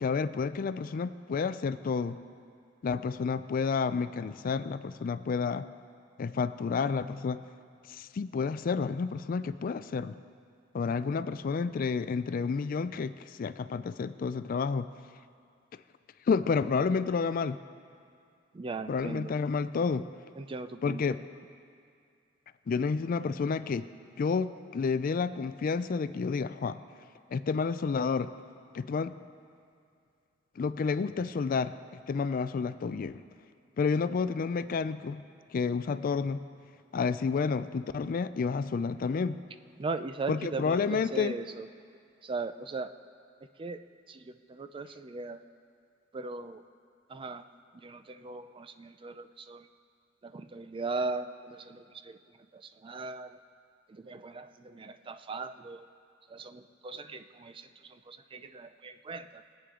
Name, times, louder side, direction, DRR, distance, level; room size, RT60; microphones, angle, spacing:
voice 1, 0.0-2.2 2.8-5.7 6.2-7.4 7.9-10.2 10.7-14.9 16.3-17.6 18.9-20.1 20.8-21.2 22.7-23.9 24.2-26.8 27.3-28.3 28.7-29.1 30.6-31.7 32.1-33.2 33.8-35.2 35.5-36.4 36.9-39.4 40.3-41.3, left 5 dB, 45° left, 13 dB, 0.3 m, -30 dB
voice 2, 18.5-19.3 20.4-21.2 39.8-41.7 42.2-42.9 43.6-43.8 44.1-45.4 46.1-46.6 47.1-47.5 47.8-49.7 50.2-52.2 52.5-53.4 53.9-55.9 56.3-59.4, right 3 dB, 25° right, 10 dB, 0.4 m, -39 dB
21.0 x 8.5 x 3.7 m, 2.3 s
head